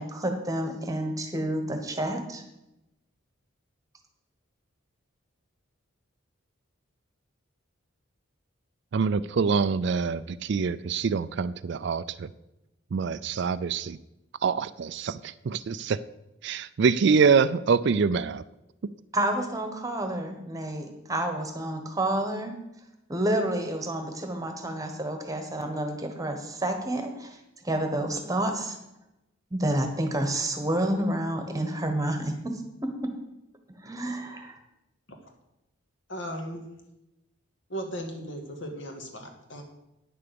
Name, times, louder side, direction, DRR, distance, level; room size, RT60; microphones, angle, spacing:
voice 1, 0.0-2.4 19.1-22.6 23.1-27.4 27.6-28.8 29.5-33.1 33.8-34.6, right 1 dB, 15° right, 5 dB, 1.2 m, -29 dB
voice 2, 8.9-12.3 12.9-14.0 14.4-16.0 16.4-18.4, right 5 dB, 55° right, 15 dB, 0.4 m, -25 dB
voice 3, 36.1-36.7 37.7-39.6, equal, 65° left, 3 dB, 1.9 m, -37 dB
9.7 x 6.8 x 7.0 m, 0.91 s
head